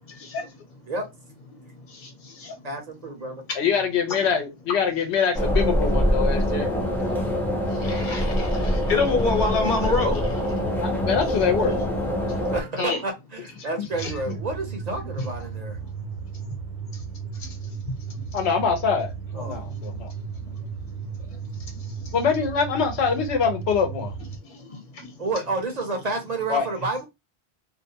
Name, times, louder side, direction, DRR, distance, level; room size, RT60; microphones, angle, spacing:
voice 1, 0.2-0.6 1.5-2.7 3.5-3.6 4.2-4.3 7.5-10.6 12.3-13.0 14.0-14.1 15.2-15.3 15.8-15.9 16.9-17.0 17.3-18.4 19.6-19.7 20.4-22.1 24.4-25.1, left 4 dB, 50° left, 1.0 m, -30 dB
voice 2, 2.6-3.4 12.5-15.8 19.3-19.7 25.2-27.0, right 2 dB, 45° right, 0.6 m, -30 dB
voice 3, 3.5-6.7 10.8-11.8 13.8-13.9 18.3-20.1 22.1-24.1 26.5-26.7, left 6 dB, 85° left, 1.0 m, -24 dB
sound 1, 5.3-12.6, equal, 5° left, 0.4 m, -24 dB
sound 2, 13.9-24.4, right 6 dB, 75° right, 0.9 m, -35 dB
2.5 x 2.1 x 2.7 m
omnidirectional pair, 1.1 m